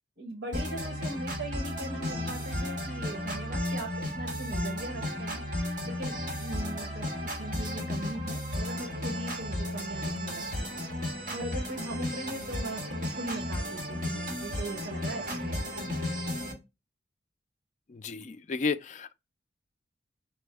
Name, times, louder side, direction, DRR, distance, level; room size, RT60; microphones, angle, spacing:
voice 1, 0.2-5.4 5.8-10.8 11.3-15.9, right 1 dB, 65° right, 1.1 m, -40 dB
sound 1, 0.5-16.5, left 1 dB, 45° right, 1.7 m, -34 dB
voice 2, 2.0-2.4 17.9-19.1, left 4 dB, 40° left, 0.3 m, -33 dB
6.0 x 2.2 x 3.3 m
head